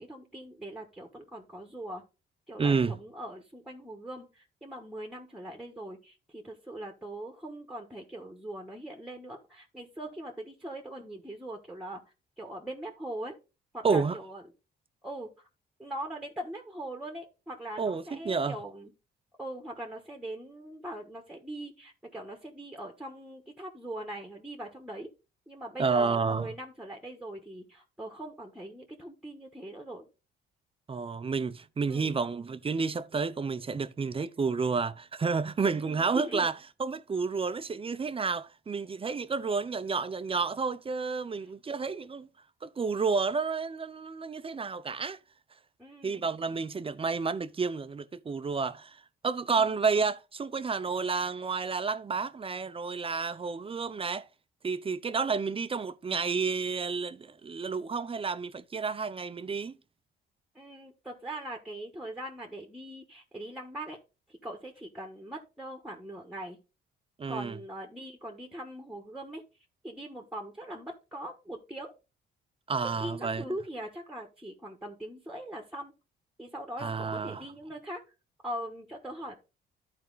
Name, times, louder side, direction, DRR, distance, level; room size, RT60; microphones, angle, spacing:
voice 1, 0.0-2.0 2.5-12.0 12.4-13.3 13.7-14.4 15.0-15.5 15.8-18.9 19.4-25.1 25.5-30.0 31.9-32.1 35.7-36.5 41.4-41.5 45.8-46.3 49.5-49.8 60.5-64.0 64.3-66.6 67.3-69.4 69.8-71.9 73.0-75.9 76.4-78.0 78.4-79.4, right 1 dB, 5° right, 1.2 m, -41 dB
voice 2, 2.6-3.0 13.8-14.2 17.8-18.6 25.8-26.5 30.9-42.3 42.6-45.2 46.0-49.0 49.2-54.3 54.6-59.7 67.2-67.6 72.7-73.4 76.8-77.4, right 5 dB, 30° right, 0.6 m, -30 dB
11.5 x 4.3 x 3.9 m
cardioid pair, 90°, 20 cm